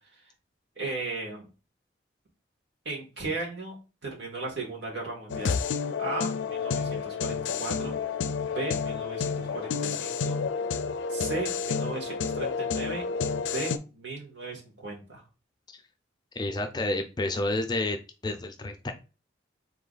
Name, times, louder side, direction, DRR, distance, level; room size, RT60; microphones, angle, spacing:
voice 1, 0.8-1.5 2.9-3.8 4.0-5.6 6.0-8.0 8.4-10.4 11.1-13.0 13.4-15.2, right 3 dB, 75° right, -1 dB, 2.1 m, -36 dB
sound 1, 5.3-13.8, left 6 dB, 85° left, 0.4 m, -30 dB
voice 2, 16.4-18.0 18.2-18.9, left 2 dB, 20° left, 6 dB, 0.5 m, -29 dB
3.7 x 3.0 x 4.0 m, 0.32 s
head